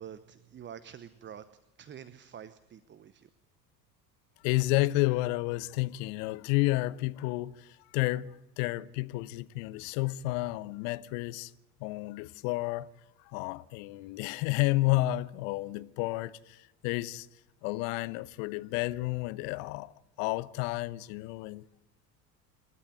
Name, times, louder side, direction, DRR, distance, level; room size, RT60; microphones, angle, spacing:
voice 1, 0.0-1.5 1.8-3.3, right 9 dB, 25° right, 0.8 m, -47 dB
voice 2, 4.4-11.5 11.8-12.9 13.3-17.3 17.6-21.7, left 19 dB, 50° left, 0.9 m, -31 dB
27.5 x 12.5 x 9.4 m
figure-of-eight pair, 65°, 50 cm